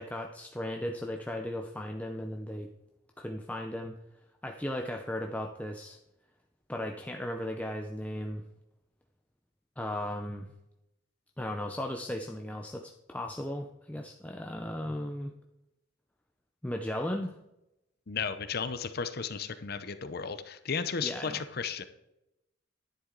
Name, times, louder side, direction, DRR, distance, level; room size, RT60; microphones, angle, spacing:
voice 1, 0.0-2.7 3.2-4.0 4.4-6.0 6.7-8.4 9.8-10.5 11.4-15.3 16.6-17.4 21.0-21.4, left 1 dB, 5° left, 3 dB, 0.5 m, -36 dB
voice 2, 18.1-21.8, left 6 dB, 50° left, 11 dB, 0.7 m, -34 dB
11.0 x 9.6 x 3.9 m, 0.88 s
head